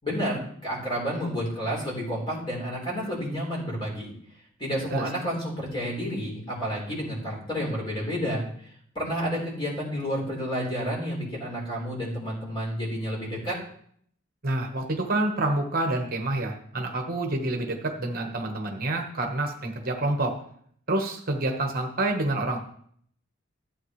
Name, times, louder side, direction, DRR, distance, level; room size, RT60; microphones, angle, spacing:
voice 1, 0.0-4.1 4.6-8.4 8.9-13.6, equal, 25° left, -3 dB, 4.0 m, -30 dB
voice 2, 14.4-20.3 20.9-22.6, right 2 dB, 45° right, 2 dB, 1.2 m, -28 dB
14.0 x 8.4 x 3.2 m, 0.64 s
head